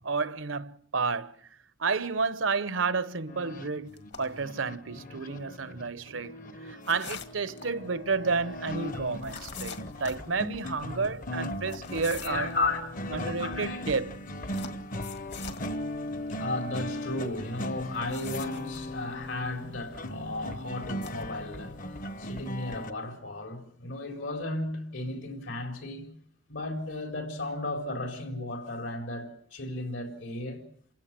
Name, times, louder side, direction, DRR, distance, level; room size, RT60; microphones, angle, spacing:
voice 1, 0.0-1.3 1.8-3.9 4.2-6.3 6.6-12.5 13.1-15.1, right 4 dB, 80° right, 1.0 m, -31 dB
sound 1, 3.3-22.9, left 1 dB, 45° left, 1.0 m, -38 dB
sound 2, 4.0-4.4 6.8-7.7 9.2-10.3 11.6-12.5 14.5-15.7 17.8-18.8 20.9-21.2, left 6 dB, 65° left, 1.9 m, -43 dB
voice 2, 12.2-13.1 13.4-13.9 14.8-26.1 26.5-30.7, left 2 dB, 80° left, 4.3 m, -35 dB
28.5 x 16.5 x 7.5 m
head